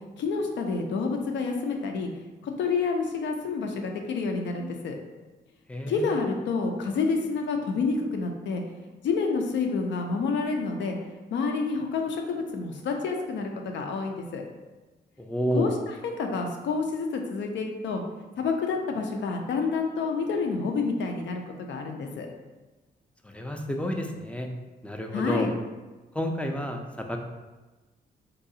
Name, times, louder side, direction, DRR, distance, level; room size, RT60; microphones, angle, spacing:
voice 1, 0.2-2.1 2.4-4.9 5.9-11.0 11.3-14.4 15.5-18.0 18.4-22.3 25.1-25.5, left 4 dB, 80° left, 3 dB, 0.5 m, -28 dB
voice 2, 5.7-6.1 15.2-15.7 23.2-24.5 24.8-25.5 26.1-27.2, equal, 5° left, 3 dB, 0.3 m, -30 dB
3.8 x 2.3 x 2.7 m, 1.2 s
cardioid pair, 90°, 19 cm